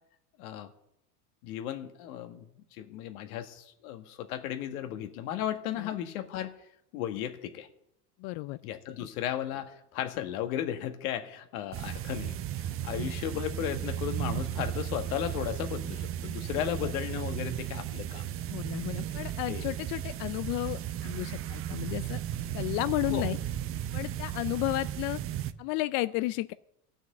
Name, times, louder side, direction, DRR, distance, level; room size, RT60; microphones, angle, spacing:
voice 1, 0.4-0.7 1.4-2.5 2.8-6.5 6.9-7.7 8.6-18.4 19.5-19.7 23.1-23.3, left 11 dB, 65° left, 7 dB, 1.7 m, -35 dB
voice 2, 8.2-8.6 9.0-9.1 16.6-16.9 18.5-22.2 22.5-23.4 23.9-25.2 25.6-26.5, left 19 dB, 40° left, 14 dB, 0.4 m, -33 dB
sound 1, 11.7-25.5, right 11 dB, 30° right, 0.6 m, -35 dB
15.5 x 6.4 x 7.7 m, 0.80 s
hypercardioid pair, 90°, 46 cm